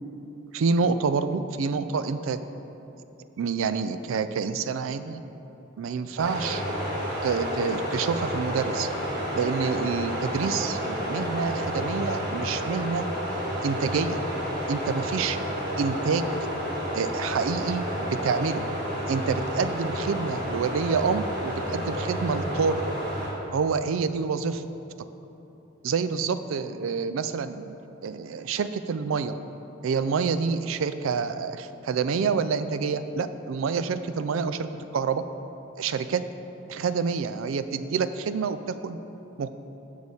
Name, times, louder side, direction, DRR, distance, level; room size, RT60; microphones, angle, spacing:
voice 1, 0.5-2.4 3.4-5.2 5.8-6.6 7.2-8.9 9.3-13.1 13.6-14.2 14.7-15.4 15.8-16.3 16.9-18.6 19.1-22.8 23.5-24.6 25.8-27.8 28.0-29.3 29.8-34.7 34.9-35.2 35.8-36.2 36.7-39.0 39.4-39.5, right 5 dB, 80° right, 11 dB, 0.4 m, -27 dB
sound 1, 6.2-23.3, equal, 50° right, 1.8 m, -30 dB
6.5 x 6.2 x 5.4 m, 3.0 s
head